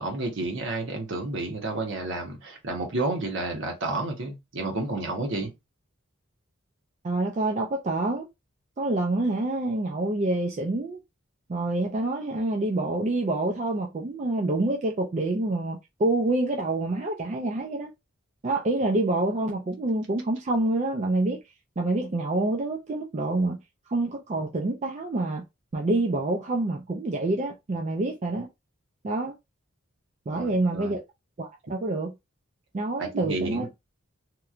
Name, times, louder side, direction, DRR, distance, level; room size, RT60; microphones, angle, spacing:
voice 1, 0.0-5.5 30.3-31.0 33.0-33.7, right 2 dB, 60° right, 1.0 m, -31 dB
voice 2, 7.0-8.3 8.8-11.0 11.5-17.9 18.4-21.4 21.8-23.6 23.9-25.4 25.7-28.5 29.0-29.3 30.3-31.0 31.4-32.1 32.7-33.6, right 2 dB, 35° right, 0.4 m, -27 dB
3.0 x 2.2 x 2.4 m
head